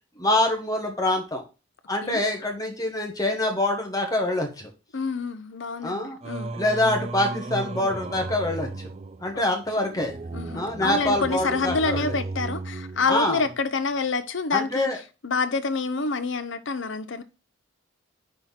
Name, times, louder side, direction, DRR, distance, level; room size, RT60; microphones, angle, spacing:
voice 1, 0.1-1.4 1.9-4.7 5.8-6.2 6.5-8.9 9.2-10.1 10.5-12.1 13.1-13.4 14.5-15.0, left 1 dB, 15° left, 1.3 m, -25 dB
voice 2, 4.9-6.5 9.3-9.5 9.8-9.9 10.3-14.9 15.2-17.2, left 4 dB, 60° left, 0.7 m, -27 dB
Singing, 6.2-13.6, right 2 dB, 30° right, 0.3 m, -35 dB
5.6 x 4.4 x 5.7 m
head